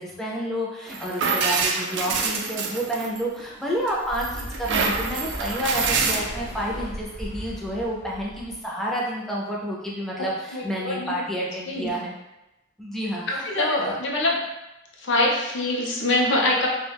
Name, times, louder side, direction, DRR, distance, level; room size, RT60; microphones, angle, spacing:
voice 1, 0.0-12.1 12.8-14.0, equal, ahead, -5 dB, 0.4 m, -29 dB
sound 1, 0.9-3.4 3.9-6.2, right 4 dB, 65° right, 0.3 m, -26 dB
Motorcycle, 3.5-8.5, equal, 35° left, 1.0 m, -37 dB
voice 2, 10.5-11.2 11.7-11.9 13.3-13.6 14.0-14.4 15.0-16.7, left 2 dB, 65° left, -2 dB, 0.6 m, -24 dB
2.3 x 2.2 x 3.3 m, 0.95 s
head